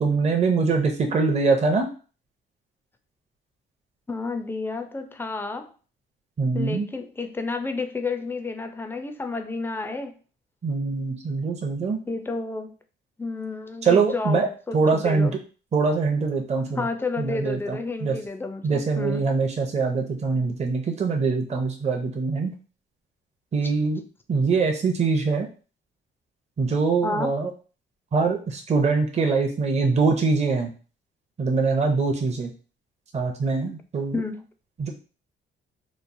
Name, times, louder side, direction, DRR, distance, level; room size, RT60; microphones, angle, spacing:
voice 1, 0.0-1.9 6.4-6.9 10.6-12.0 13.8-14.5 14.7-15.4 15.7-16.9 17.2-18.2 18.6-22.5 23.5-24.0 24.3-25.5 26.6-27.5 28.1-30.7 31.4-32.5 33.1-34.2 34.8-34.9, right 4 dB, 35° right, 0.6 m, -23 dB
voice 2, 4.1-5.7 6.5-10.1 12.1-12.7 13.2-15.4 16.8-19.2 27.0-27.4 34.1-34.4, left 3 dB, 10° left, 0.4 m, -31 dB
3.0 x 2.0 x 2.5 m
cardioid pair, 90°, 20 cm